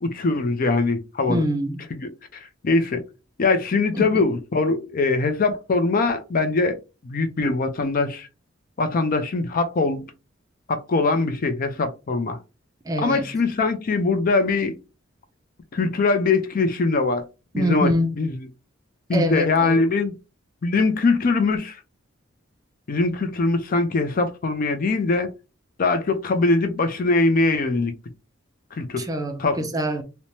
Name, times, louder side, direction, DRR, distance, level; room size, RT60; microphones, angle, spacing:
voice 1, 0.0-1.4 1.9-2.0 2.3-3.0 3.4-6.8 7.0-8.3 8.8-10.1 10.7-12.4 13.0-14.8 15.7-17.2 17.6-18.4 19.1-20.1 20.6-21.8 22.9-25.3 25.8-27.9 28.7-29.1 29.4-29.7, left 3 dB, 45° left, 0.4 m, -22 dB
voice 2, 1.3-1.8 3.9-4.2 12.9-13.3 17.5-18.1 19.1-19.8 29.0-30.0, equal, 20° right, 0.4 m, -25 dB
3.1 x 2.1 x 2.6 m
head